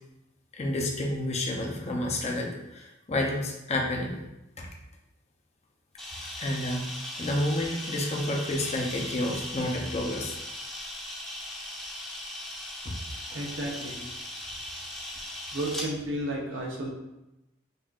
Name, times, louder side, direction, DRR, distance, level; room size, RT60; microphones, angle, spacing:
voice 1, 0.5-4.2 4.6-4.7 6.4-10.4 12.8-12.9, left 1 dB, 35° left, 0 dB, 0.6 m, -30 dB
Camera, 6.0-15.9, left 1 dB, ahead, 0.8 m, -38 dB
voice 2, 13.3-14.0 15.5-16.9, right 1 dB, 75° right, -1 dB, 0.8 m, -32 dB
5.4 x 2.5 x 2.4 m, 0.93 s
head